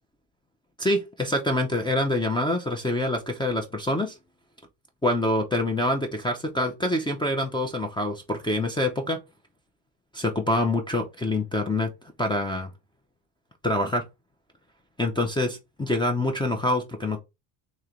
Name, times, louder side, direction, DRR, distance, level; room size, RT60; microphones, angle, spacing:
voice 1, 0.8-4.2 5.0-9.2 10.1-11.9 12.2-12.7 13.6-14.0 15.0-17.2, left 1 dB, 10° left, 0.5 m, -26 dB
3.1 x 3.0 x 3.6 m
cardioid pair, 110°, 50 cm